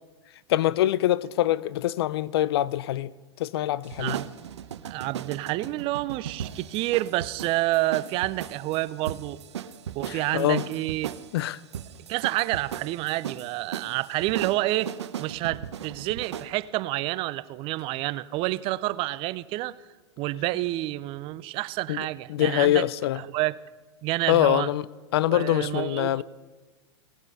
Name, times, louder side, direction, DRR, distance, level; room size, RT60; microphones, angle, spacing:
voice 1, 0.5-3.1 3.4-4.2 10.1-10.6 11.3-11.6 21.9-22.0 22.3-23.2 24.3-24.8 25.1-26.2, left 13 dB, 60° left, 0.4 m, -24 dB
sound 1, 3.8-16.5, right 9 dB, 75° right, 0.8 m, -38 dB
voice 2, 4.8-9.4 9.9-11.1 12.1-14.9 15.2-19.7 20.2-22.9 23.2-23.6 24.0-24.7 25.3-26.2, right 17 dB, 35° right, 0.5 m, -28 dB
18.5 x 8.0 x 5.4 m
hypercardioid pair, 105°, 15 cm